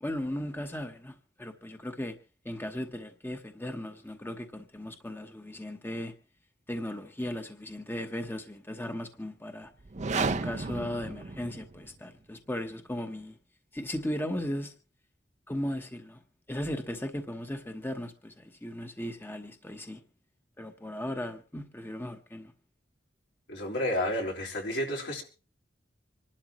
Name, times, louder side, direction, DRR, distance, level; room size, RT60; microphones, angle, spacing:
voice 1, 0.0-2.1 2.4-6.1 6.7-9.7 10.1-13.4 13.7-14.7 15.5-16.2 16.5-20.0 20.6-22.5, left 1 dB, 10° left, 1.0 m, -36 dB
sound 1, 9.8-12.0, right 3 dB, 40° right, 0.7 m, -33 dB
voice 2, 23.5-25.2, left 1 dB, 80° left, 4.3 m, -31 dB
26.0 x 12.0 x 3.0 m
head